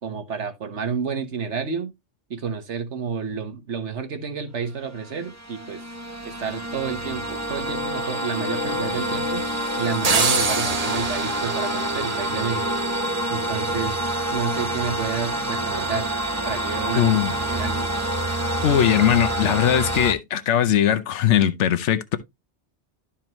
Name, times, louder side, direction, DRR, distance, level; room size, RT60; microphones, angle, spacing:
voice 1, 0.0-1.9 2.3-5.8 6.2-9.5 9.8-12.6 13.3-14.0 14.3-16.1 16.4-17.9, right 6 dB, 80° right, 1.6 m, -30 dB
sound 1, 4.9-20.1, right 1 dB, 15° right, 0.8 m, -27 dB
sound 2, 10.0-12.9, right 4 dB, 35° right, 1.0 m, -25 dB
voice 2, 17.0-17.3 18.6-22.2, left 10 dB, 90° left, 1.1 m, -20 dB
12.5 x 4.4 x 3.0 m
omnidirectional pair, 1.2 m